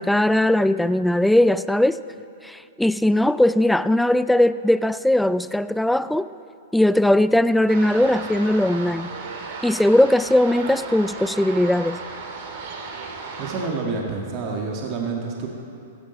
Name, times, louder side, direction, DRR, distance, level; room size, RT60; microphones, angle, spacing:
voice 1, 0.0-2.0 2.4-6.3 6.7-9.1 9.6-12.0, left 1 dB, 5° left, 15 dB, 0.3 m, -19 dB
sound 1, 7.7-13.7, right 4 dB, 60° right, 2.4 m, -35 dB
voice 2, 13.4-15.5, right 4 dB, 45° right, 0 dB, 1.9 m, -28 dB
16.0 x 14.5 x 4.1 m, 2.6 s
hypercardioid pair, 115°, 0 cm